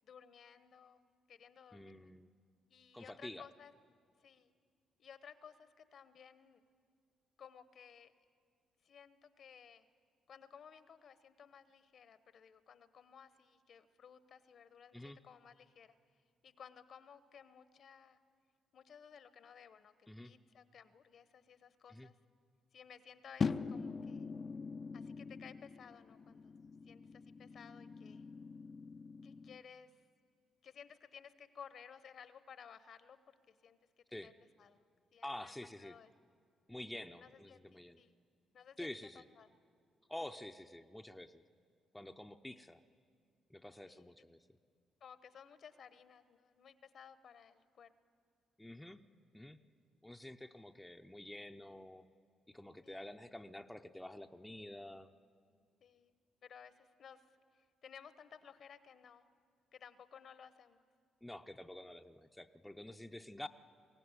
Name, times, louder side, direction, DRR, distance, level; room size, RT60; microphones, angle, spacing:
voice 1, 0.0-2.1 2.7-3.7 4.2-4.5 5.0-6.6 7.4-8.1 8.8-9.9 10.3-15.9 16.4-18.2 18.7-22.1 22.7-24.3 24.9-26.5 26.9-28.2 29.2-30.0 30.6-33.2 33.5-34.3 34.6-34.8 35.1-35.5 35.8-36.1 37.2-38.2 38.5-38.9 39.1-39.5 43.8-44.1 45.0-47.9 52.8-53.1 55.8-56.2 56.4-59.3 59.7-60.8, left 7 dB, 60° left, 13 dB, 1.0 m, -57 dB
voice 2, 1.7-2.3 2.9-3.4 14.9-15.2 20.1-20.3 21.9-22.1 34.1-34.3 35.2-36.0 36.7-38.0 38.8-39.3 40.1-41.4 41.9-42.8 43.5-44.5 48.6-49.0 49.3-49.6 50.0-52.0 52.5-55.1 61.2-63.5, left 1 dB, 5° left, 5 dB, 0.7 m, -48 dB
sound 1, 23.4-29.6, left 5 dB, 40° left, 0.5 m, -42 dB
22.5 x 17.0 x 9.8 m, 2.1 s
cardioid pair, 90°, 0 cm